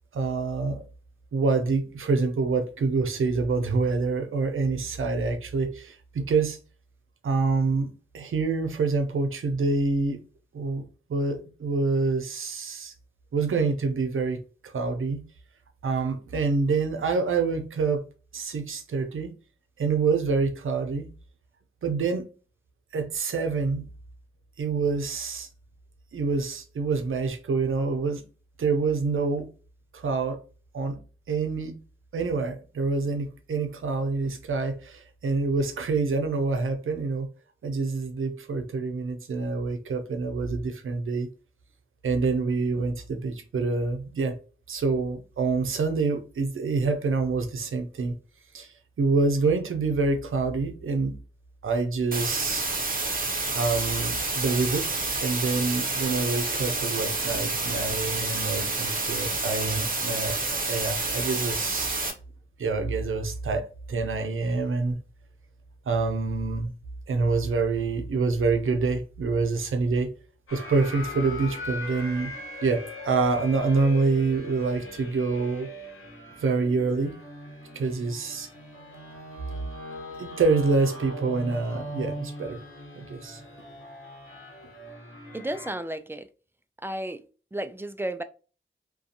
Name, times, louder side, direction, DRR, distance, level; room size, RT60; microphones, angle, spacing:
voice 1, 0.1-0.9 1.3-6.6 7.2-10.2 10.5-12.9 13.3-15.2 15.8-18.0 18.3-19.3 19.8-21.1 21.8-22.3 22.9-23.8 24.6-25.5 26.1-28.2 28.6-29.5 29.9-30.4 30.7-31.0 31.3-31.7 32.1-37.3 37.6-41.3 42.0-44.4 44.7-48.2 48.5-51.1 51.6-52.7 53.5-54.9 55.2-61.9 62.6-65.0 65.9-66.7 67.1-70.1 70.5-72.3 72.6-75.7 76.4-77.2 77.7-78.5 80.2-82.6 82.9-83.4, right 4 dB, 80° right, 0.6 m, -26 dB
sound 1, 52.1-62.1, right 3 dB, 45° right, 0.7 m, -29 dB
sound 2, 70.5-85.7, left 1 dB, 90° left, 0.9 m, -40 dB
voice 2, 85.3-86.3 86.8-87.2 87.5-88.2, right 1 dB, 10° right, 0.3 m, -33 dB
2.5 x 2.3 x 2.7 m
cardioid pair, 50°, 21 cm